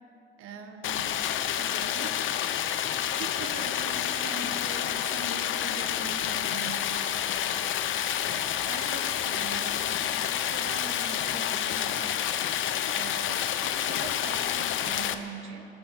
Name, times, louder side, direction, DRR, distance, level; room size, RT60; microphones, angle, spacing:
voice 1, 0.4-1.1 1.6-2.2 3.2-8.0 8.3-12.2 12.9-15.7, right 4 dB, 85° right, 6 dB, 1.5 m, -42 dB
Stream, 0.8-15.1, left 10 dB, 70° left, 0.8 m, -29 dB
22.5 x 9.3 x 6.5 m, 2.8 s
cardioid pair, 160°, 21 cm